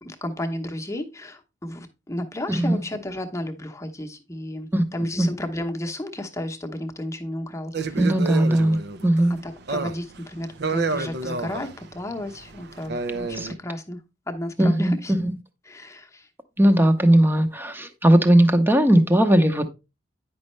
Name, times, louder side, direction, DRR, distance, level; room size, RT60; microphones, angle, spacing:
voice 1, 0.0-8.0 9.4-14.0 14.3-15.1 15.6-16.3, left 1 dB, 15° left, 0.9 m, -33 dB
sound 1, 7.7-13.5, right 4 dB, 60° right, 0.6 m, -30 dB
voice 2, 8.0-9.4 13.3-13.5 14.6-15.3 16.6-19.7, right 1 dB, 10° right, 0.8 m, -18 dB
9.4 x 5.4 x 3.1 m
head